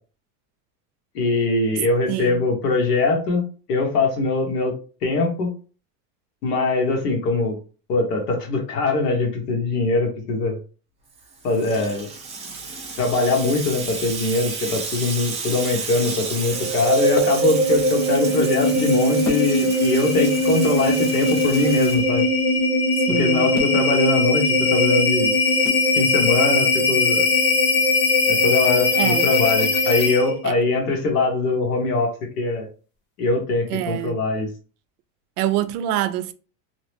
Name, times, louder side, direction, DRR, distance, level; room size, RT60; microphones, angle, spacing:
voice 1, 1.1-4.7 5.0-5.5 6.4-7.6 7.9-10.6 11.4-12.1 13.0-22.2 23.1-25.3 26.0-27.3 28.3-32.1 32.4-32.7 33.2-34.5, left 3 dB, 85° left, 1.2 m, -22 dB
voice 2, 2.1-2.4 23.1-23.6 28.9-29.3 30.4-30.5 33.7-34.2 35.4-36.3, right 12 dB, 75° right, 0.5 m, -25 dB
Water tap faucet / Sink (filling or washing), 11.2-22.6, right 4 dB, 15° right, 0.5 m, -32 dB
sound 1, 16.5-30.4, left 2 dB, 40° left, 0.6 m, -20 dB
2.9 x 2.1 x 3.1 m
supercardioid pair, 150°, 46 cm